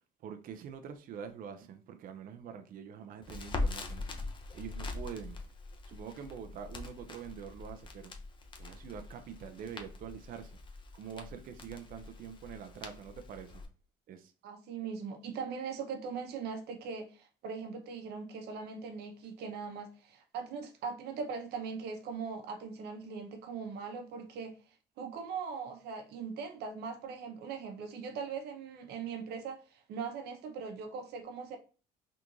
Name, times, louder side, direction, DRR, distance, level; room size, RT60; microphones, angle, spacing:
voice 1, 0.2-4.2 4.5-5.4 5.9-8.1 8.6-10.6 10.9-13.6 14.1-14.3, right 7 dB, 55° right, 0.5 m, -45 dB
Crackle, 3.2-13.7, left 3 dB, 30° left, 0.6 m, -42 dB
voice 2, 14.4-24.5 25.0-31.6, right 5 dB, 75° right, 0.8 m, -40 dB
3.5 x 2.5 x 3.0 m
cardioid pair, 110°, 17 cm